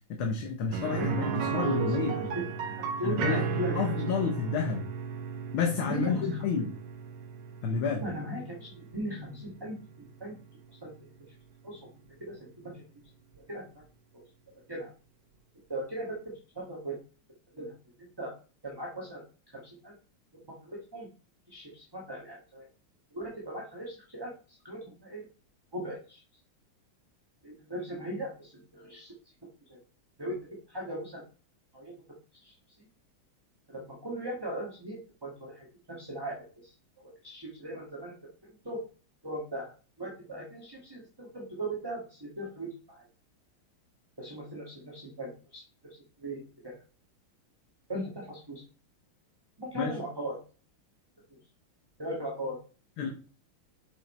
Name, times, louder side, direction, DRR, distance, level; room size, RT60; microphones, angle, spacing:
voice 1, 0.2-2.2 3.0-4.9 5.5-6.7 7.6-8.0 49.8-50.0 53.0-53.1, left 5 dB, 75° left, 3 dB, 1.9 m, -30 dB
sound 1, 0.7-10.5 10.8-10.9 13.3-13.4, right 6 dB, 80° right, 1.9 m, -35 dB
voice 2, 0.9-1.8 2.1-2.3 2.6-3.9 5.8-6.4 7.7-10.4 10.8-10.9 11.2-11.3 11.6-11.9 12.2-12.8 13.5-13.6 14.1-14.2 14.7-14.9 15.7-16.2 16.5-17.0 17.6-17.7 18.0-18.3 18.6-19.2 19.5-20.0 20.5-21.1 21.5-22.7 23.1-25.3 25.7-26.2 27.4-29.1 29.7-29.8 30.2-30.4 30.7-31.2 31.7-31.9 32.3-32.5 33.7-38.3 38.6-38.8 39.2-39.7 40.0-43.0 44.2-46.8 47.9-48.6 49.6-50.4 52.0-52.6, right 1 dB, 10° right, -2 dB, 1.4 m, -38 dB
7.6 x 5.7 x 4.3 m, 0.37 s
omnidirectional pair, 2.3 m